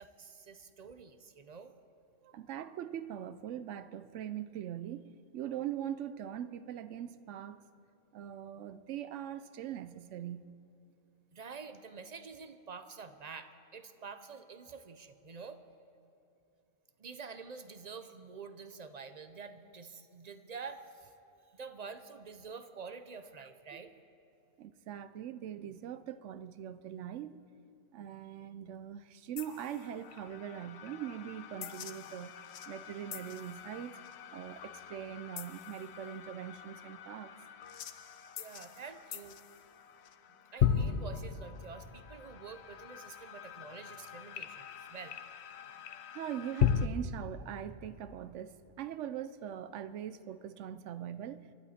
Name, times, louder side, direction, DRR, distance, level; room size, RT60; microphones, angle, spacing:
voice 1, 0.0-1.7 11.3-15.6 17.0-21.1 21.5-23.9 38.4-39.3 40.5-45.2, right 5 dB, 40° right, 10 dB, 0.7 m, -48 dB
voice 2, 2.2-7.6 8.1-10.5 24.6-27.4 27.9-32.3 32.7-34.0 34.3-37.3 46.1-51.5, right 10 dB, 85° right, 13 dB, 0.9 m, -42 dB
sound 1, 29.4-46.9, left 9 dB, 70° left, 0.9 m, -38 dB
23.5 x 12.0 x 4.2 m, 2.9 s
omnidirectional pair, 1.2 m